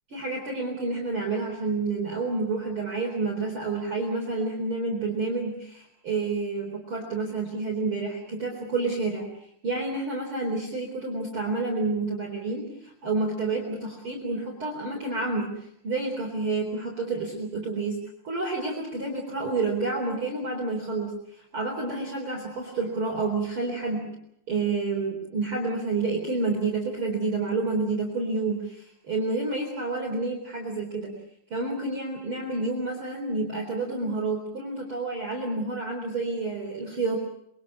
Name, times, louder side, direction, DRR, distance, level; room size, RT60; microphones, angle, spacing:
voice 1, 0.1-9.3 9.6-24.1 24.5-31.2 31.5-37.2, right 3 dB, 30° right, -1 dB, 4.4 m, -29 dB
27.0 x 24.0 x 6.4 m, 0.75 s
omnidirectional pair, 5.2 m